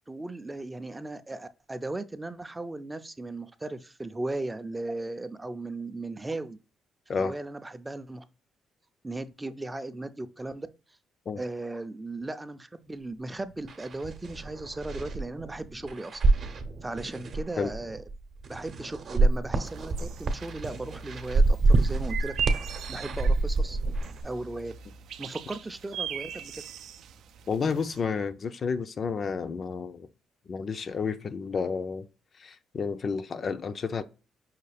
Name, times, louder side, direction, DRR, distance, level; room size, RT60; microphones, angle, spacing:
voice 1, 0.1-6.6 7.1-8.2 9.0-10.7 11.4-16.2 16.8-18.0 18.5-22.3 22.9-23.8 24.2-24.7 25.2-26.6, right 2 dB, 15° right, 0.4 m, -37 dB
sound 1, 13.3-13.4 13.6-24.2, right 3 dB, 55° right, 0.8 m, -27 dB
sound 2, 19.6-28.0, right 7 dB, 75° right, 0.4 m, -39 dB
voice 2, 27.5-30.1 30.5-32.1 32.4-34.0, left 5 dB, 45° left, 0.4 m, -31 dB
5.6 x 2.3 x 3.3 m
cardioid pair, 90°, 0 cm